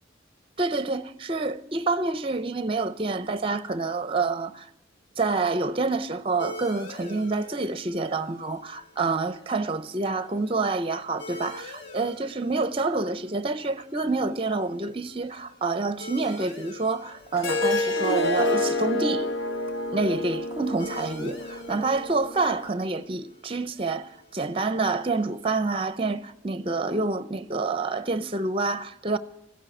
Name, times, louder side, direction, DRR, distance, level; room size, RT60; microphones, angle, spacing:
voice 1, 0.6-4.7 5.2-19.3 19.9-29.2, right 3 dB, 25° right, 0.6 m, -27 dB
sound 1, 6.4-25.5, left 1 dB, 60° left, 2.6 m, -47 dB
Harp, 17.4-22.5, left 2 dB, 75° left, 1.2 m, -28 dB
14.5 x 10.0 x 9.1 m
head